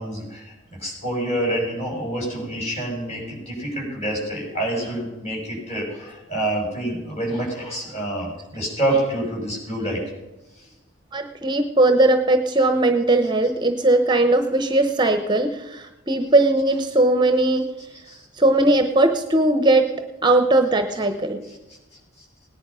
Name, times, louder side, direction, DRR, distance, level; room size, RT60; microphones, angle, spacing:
voice 1, 0.0-10.0 10.6-10.7 18.1-18.2 22.2-22.3, right 1 dB, 30° left, -2 dB, 6.5 m, -27 dB
voice 2, 11.1-17.7 18.3-19.9 20.2-21.4, right 2 dB, 20° right, 7 dB, 0.8 m, -19 dB
18.0 x 10.5 x 5.6 m, 1.0 s
head